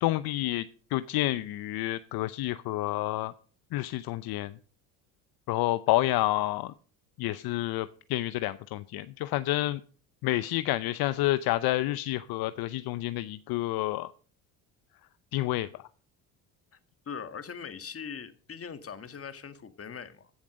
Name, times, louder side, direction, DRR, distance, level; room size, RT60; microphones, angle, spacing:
voice 1, 0.0-3.3 3.7-4.6 5.5-6.7 7.2-9.8 10.2-14.1 15.3-15.8, left 16 dB, 60° left, 0.7 m, -29 dB
voice 2, 17.0-20.3, left 6 dB, 35° left, 1.6 m, -41 dB
15.5 x 7.1 x 5.2 m
supercardioid pair, 70°, 40 cm